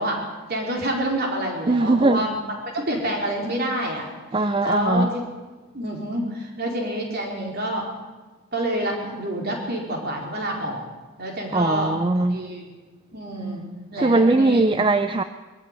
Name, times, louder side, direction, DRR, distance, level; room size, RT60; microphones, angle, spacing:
voice 1, 0.0-2.4 2.7-4.1 4.6-5.2 5.7-7.9 8.5-10.8 11.2-12.0 12.3-12.7 13.1-13.6 13.9-14.6, right 1 dB, 50° right, 0 dB, 4.5 m, -27 dB
voice 2, 1.7-2.3 4.3-5.1 11.5-12.4 14.0-15.2, right 2 dB, 25° right, 10 dB, 0.5 m, -20 dB
21.0 x 14.0 x 9.1 m, 1.2 s
head